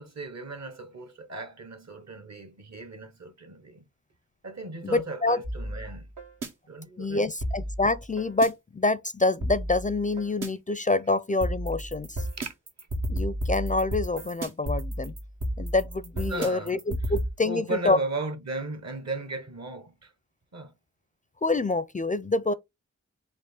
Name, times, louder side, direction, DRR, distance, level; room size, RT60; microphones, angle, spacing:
voice 1, 0.0-3.9 4.4-6.1 6.7-7.3 12.4-12.5 16.3-16.7 17.4-20.1 20.5-20.7, right 3 dB, 60° right, 1.2 m, -36 dB
voice 2, 4.8-5.4 7.0-12.2 13.1-15.1 15.6-18.0 21.4-22.5, left 2 dB, 25° left, 0.4 m, -26 dB
sound 1, 5.4-6.5 7.4-8.5 9.4-10.5 11.4-17.3, equal, 85° right, 1.4 m, -32 dB
5.0 x 2.1 x 3.6 m
cardioid pair, 45°, 31 cm